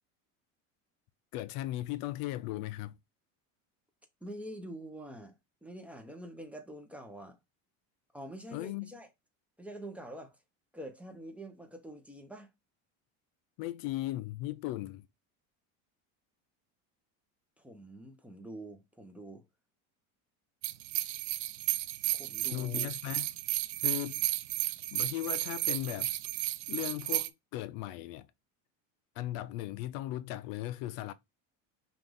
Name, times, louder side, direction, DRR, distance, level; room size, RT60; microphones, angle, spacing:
voice 1, 1.3-3.0 8.5-8.9 13.6-15.1 22.5-23.3 23.8-24.3 24.9-26.1 26.7-28.3 29.2-31.1, left 15 dB, 60° left, 0.5 m, -37 dB
voice 2, 4.2-5.4 5.6-7.4 8.1-9.1 9.6-10.4 10.7-12.5 17.6-19.4 22.1-22.9, right 1 dB, 5° right, 0.7 m, -46 dB
sound 1, 20.6-27.3, right 16 dB, 90° right, 0.5 m, -33 dB
5.8 x 2.5 x 3.4 m
supercardioid pair, 135°, 40 cm